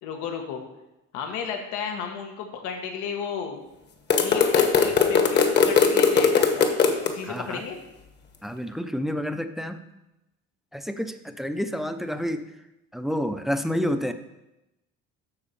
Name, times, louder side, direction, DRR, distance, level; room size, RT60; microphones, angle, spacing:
voice 1, 0.0-0.6 1.1-3.6 4.2-6.7 7.0-7.8, left 6 dB, 90° left, 4 dB, 1.5 m, -33 dB
sound 1, 4.1-7.1, left 6 dB, 35° left, 1.1 m, -20 dB
voice 2, 7.3-7.6 8.4-9.8 10.7-12.5 12.9-14.1, equal, ahead, 9 dB, 0.5 m, -29 dB
12.0 x 4.2 x 6.8 m, 0.94 s
cardioid pair, 145°, 29 cm